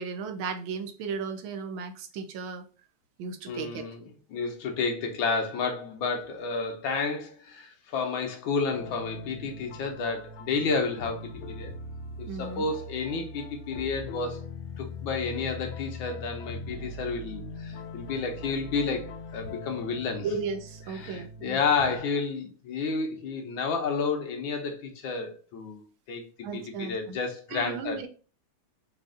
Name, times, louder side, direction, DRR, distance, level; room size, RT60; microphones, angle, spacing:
voice 1, 0.0-2.6 3.2-3.8 12.3-12.7 20.2-21.6 26.4-27.2 27.5-28.1, right 5 dB, 85° right, 1.5 m, -35 dB
voice 2, 3.5-4.0 4.3-11.7 12.2-14.5 14.8-20.3 21.0-26.2 26.5-28.1, left 4 dB, 85° left, 1.7 m, -31 dB
sound 1, 8.7-22.0, left 2 dB, 65° left, 0.9 m, -41 dB
5.1 x 2.5 x 3.8 m
omnidirectional pair, 2.1 m